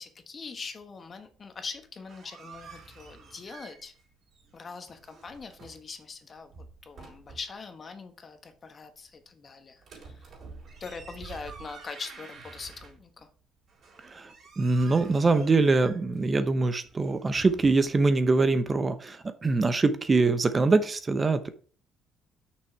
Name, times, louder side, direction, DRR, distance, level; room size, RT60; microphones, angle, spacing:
voice 1, 0.0-3.9 4.5-10.3 10.8-13.3, left 5 dB, 40° left, 7 dB, 1.3 m, -42 dB
sound 1, 1.8-4.1 4.3-5.9 6.4-7.6 9.8-13.2 13.7-18.1, right 5 dB, 55° right, 4.0 m, -49 dB
voice 2, 14.6-21.5, right 3 dB, 30° right, 11 dB, 0.7 m, -24 dB
6.3 x 6.2 x 4.6 m, 0.41 s
cardioid pair, 95°, 0 cm